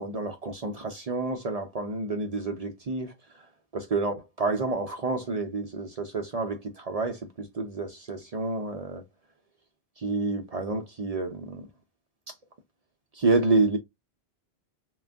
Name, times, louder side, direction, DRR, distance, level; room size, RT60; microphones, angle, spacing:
voice 1, 0.0-3.1 3.7-9.0 10.0-11.7 13.1-13.8, right 3 dB, 50° right, 0.5 m, -29 dB
2.5 x 2.2 x 3.3 m
omnidirectional pair, 1.1 m